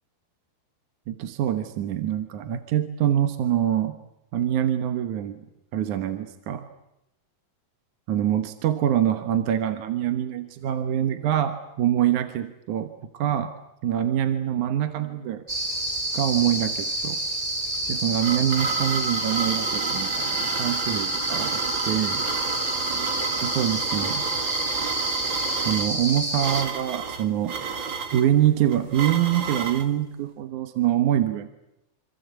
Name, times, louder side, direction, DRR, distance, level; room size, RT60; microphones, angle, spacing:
voice 1, 1.1-3.9 4.3-5.4 5.7-6.7 8.1-13.5 13.8-15.4 16.1-17.2 17.9-22.2 23.4-24.2 25.7-27.5 28.1-31.5, right 11 dB, 65° right, 8 dB, 2.4 m, -25 dB
sound 1, 15.5-26.6, right 1 dB, 10° right, 3.3 m, -28 dB
sound 2, 17.7-29.9, right 6 dB, 40° right, 2.0 m, -31 dB
27.0 x 26.5 x 8.2 m, 0.86 s
omnidirectional pair, 4.3 m